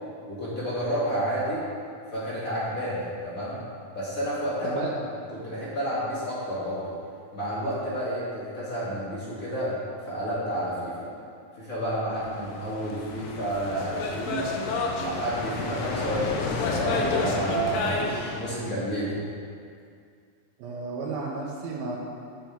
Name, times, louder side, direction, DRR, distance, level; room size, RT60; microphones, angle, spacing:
voice 1, 0.3-1.6 2.1-3.6 3.9-4.8 5.3-6.9 7.3-9.8 10.0-11.1 11.6-14.5 15.0-19.2, right 1 dB, 30° left, -9 dB, 1.6 m, -30 dB
sound 1, 12.1-18.4, left 3 dB, 90° left, 3.0 m, -30 dB
voice 2, 20.6-22.0, right 4 dB, 75° right, -5 dB, 2.5 m, -32 dB
9.2 x 6.9 x 4.5 m, 2.3 s
omnidirectional pair, 4.7 m